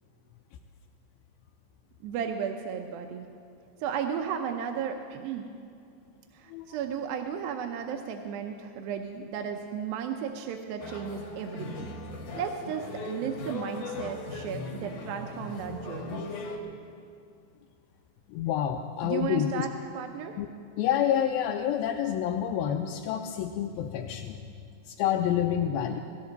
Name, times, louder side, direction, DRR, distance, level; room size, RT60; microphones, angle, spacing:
voice 1, 2.0-3.3 3.8-5.5 6.3-11.9 12.3-16.4 19.0-20.4, right 7 dB, 85° right, 4 dB, 2.5 m, -34 dB
sound 1, 10.8-16.6, left 2 dB, 65° left, 2.7 m, -38 dB
voice 2, 18.3-19.7 20.4-20.5 20.8-24.4 24.9-26.0, left 10 dB, 90° left, 2 dB, 2.5 m, -28 dB
17.5 x 16.0 x 4.0 m, 2.5 s
omnidirectional pair, 4.1 m